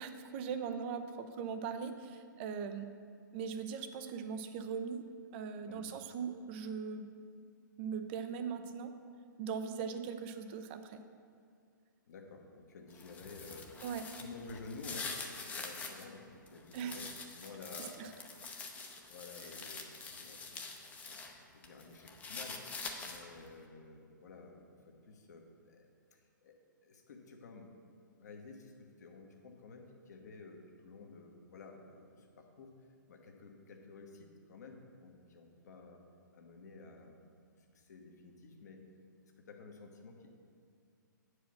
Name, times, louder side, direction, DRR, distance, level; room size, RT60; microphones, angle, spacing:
voice 1, 0.0-2.9 3.3-5.0 5.3-7.1 7.8-8.9 9.4-11.0 13.8-14.1 16.7-17.0 18.0-18.1, right 6 dB, 35° right, 8 dB, 0.6 m, -40 dB
voice 2, 12.1-13.8 14.2-17.1 17.3-18.0 19.1-20.6 21.0-22.6 23.0-27.7 28.2-32.7 33.1-36.0 36.3-37.2 37.6-38.8 39.4-40.4, left 3 dB, 55° left, 2 dB, 1.2 m, -52 dB
sound 1, 12.9-16.0 16.5-21.3 21.6-23.4, left 4 dB, 15° left, 0.7 m, -45 dB
9.1 x 4.9 x 6.0 m, 2.2 s
figure-of-eight pair, 120°, 11 cm